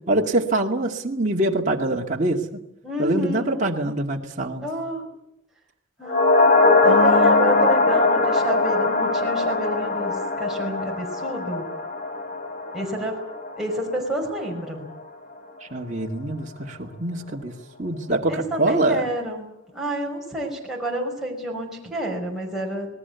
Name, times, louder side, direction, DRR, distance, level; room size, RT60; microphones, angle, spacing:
voice 1, 0.0-2.5 3.0-4.7 6.8-7.7 15.6-19.1, right 2 dB, 35° right, -1 dB, 2.3 m, -24 dB
voice 2, 2.8-3.6 4.6-5.1 6.0-11.6 12.7-13.1 13.6-14.9 18.3-22.9, right 1 dB, ahead, -2 dB, 5.5 m, -29 dB
sound 1, 6.0-14.5 14.8-14.9, left 3 dB, 40° left, 3.5 m, -21 dB
27.0 x 20.0 x 8.3 m, 0.80 s
head